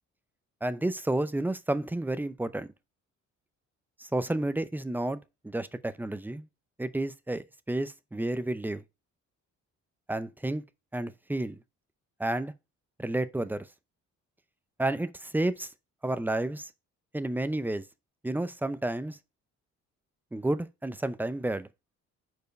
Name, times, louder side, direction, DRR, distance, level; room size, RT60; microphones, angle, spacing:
voice 1, 0.6-2.7 4.0-5.2 5.4-6.5 6.8-8.8 10.1-10.6 10.9-11.6 12.2-12.5 13.0-13.7 14.8-15.7 16.0-16.7 17.1-17.8 18.2-19.2 20.3-21.7, right 1 dB, 5° right, 0.6 m, -31 dB
5.0 x 4.7 x 5.3 m
cardioid pair, 90°, 30 cm